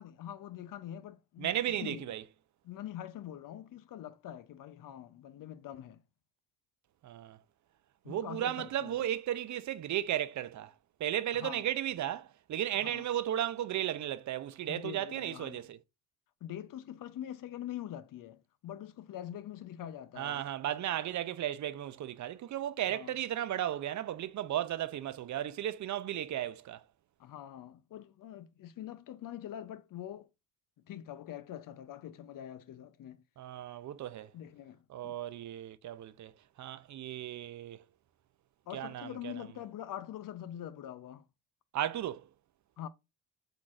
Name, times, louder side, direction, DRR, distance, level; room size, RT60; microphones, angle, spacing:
voice 1, 0.0-1.5 1.8-2.1 2.6-6.0 8.0-8.9 11.3-11.6 12.8-13.1 14.7-15.7 16.4-20.5 22.9-23.1 27.2-30.3 30.9-33.2 34.3-35.1 38.7-41.2 42.8-42.9, left 11 dB, 50° left, 0.6 m, -44 dB
voice 2, 1.4-2.2 7.0-7.4 8.1-10.7 11.0-15.8 20.2-26.8 33.4-34.3 34.9-36.3 36.6-37.8 38.7-39.4 41.7-42.2, right 11 dB, 45° right, 0.5 m, -35 dB
4.5 x 3.9 x 2.4 m
supercardioid pair, 65°, 42 cm